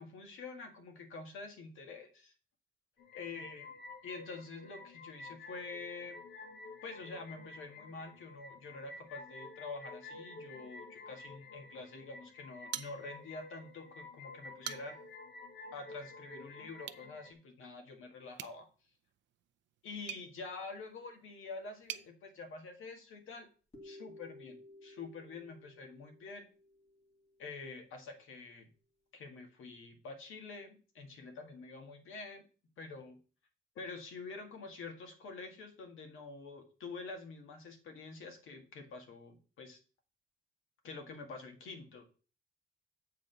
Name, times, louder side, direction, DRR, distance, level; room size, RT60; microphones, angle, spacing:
voice 1, 0.0-2.3 3.1-3.7 4.0-6.2 6.8-15.0 15.7-18.7 19.8-23.5 23.8-26.4 27.4-28.7 29.1-32.4 32.8-33.2 33.8-39.8 40.8-42.0, left 3 dB, 75° left, 5 dB, 1.9 m, -47 dB
sound 1, 3.0-17.3, left 3 dB, 55° left, 1.2 m, -51 dB
sound 2, 12.7-13.5 13.8-13.9 14.4-15.2 16.8-17.1 18.3-22.1, right 11 dB, 65° right, 0.6 m, -46 dB
sound 3, 23.7-27.7, left 1 dB, 30° left, 1.9 m, -56 dB
8.3 x 3.8 x 6.8 m, 0.37 s
cardioid pair, 165°, 21 cm